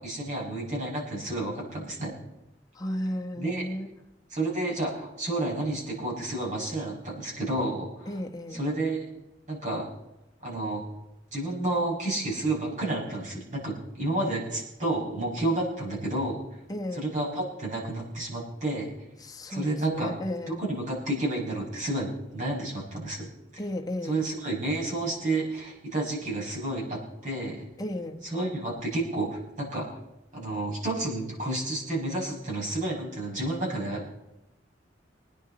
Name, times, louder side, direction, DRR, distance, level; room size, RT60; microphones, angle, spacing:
voice 1, 0.0-2.1 3.4-3.6 4.3-8.1 8.5-9.0 9.5-9.9 10.4-10.8 11.3-16.4 16.9-18.9 19.5-20.1 20.5-23.3 23.5-23.6 24.0-27.7 28.2-30.0 30.3-34.1, right 2 dB, 45° right, -3 dB, 5.6 m, -30 dB
voice 2, 2.7-3.9 8.1-8.7 16.7-17.1 19.2-20.6 23.6-24.3 27.8-28.2, left 1 dB, 20° left, 2 dB, 1.3 m, -34 dB
22.0 x 9.9 x 4.3 m, 0.94 s
head